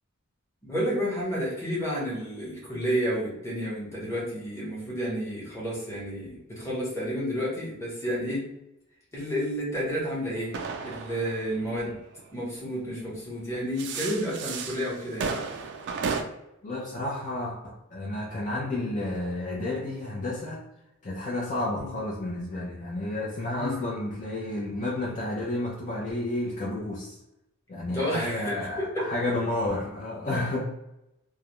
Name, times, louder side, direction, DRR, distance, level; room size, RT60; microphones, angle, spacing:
voice 1, 0.6-8.4 9.1-10.6 10.8-12.0 12.3-15.4 21.8-21.9 23.6-23.8 27.9-28.9, equal, 15° left, -6 dB, 0.9 m, -31 dB
sound 1, 9.9-12.6 13.5-16.2, right 5 dB, 55° right, 0.3 m, -34 dB
voice 2, 16.6-20.6 21.0-27.2 27.7-30.6, left 2 dB, 35° left, -5 dB, 0.5 m, -31 dB
2.3 x 2.0 x 2.9 m, 0.88 s
head